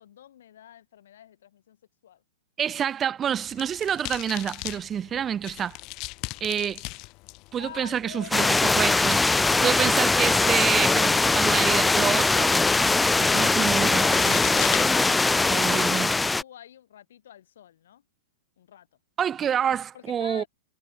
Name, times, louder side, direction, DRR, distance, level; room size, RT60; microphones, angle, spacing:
voice 1, 0.0-1.8 2.0-2.2 7.5-8.6 14.9-18.0 18.6-18.9 19.9-20.5, left 11 dB, 65° left, 6.3 m, -46 dB
voice 2, 2.6-5.8 6.4-6.8 7.5-9.3 9.6-12.5 13.2-14.7 15.5-16.1 19.2-20.4, right 8 dB, 25° right, 1.1 m, -28 dB
sound 1, 3.2-15.6, left 24 dB, 40° left, 4.8 m, -40 dB
sound 2, 8.3-16.4, left 3 dB, 10° left, 0.5 m, -21 dB
hypercardioid pair, 105°, 0 cm